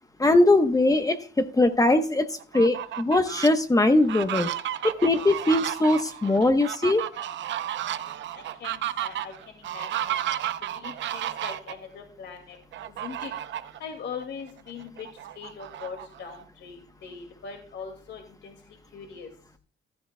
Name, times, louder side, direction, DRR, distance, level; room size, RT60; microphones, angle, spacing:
voice 1, 0.2-2.3 2.5-4.5 4.8-7.1, left 2 dB, 15° left, 8 dB, 1.0 m, -21 dB
Fowl, 2.4-3.5 4.0-11.7 12.7-13.8 14.2-14.3 14.7-16.4, right 12 dB, 70° right, 0.7 m, -33 dB
voice 2, 8.3-9.3 9.6-10.2 10.7-12.6 13.0-13.3 13.8-15.1 15.4-18.6 18.9-19.3, left 6 dB, 65° left, 3 dB, 2.2 m, -41 dB
15.0 x 12.0 x 2.3 m, 0.38 s
cardioid pair, 90°, 20 cm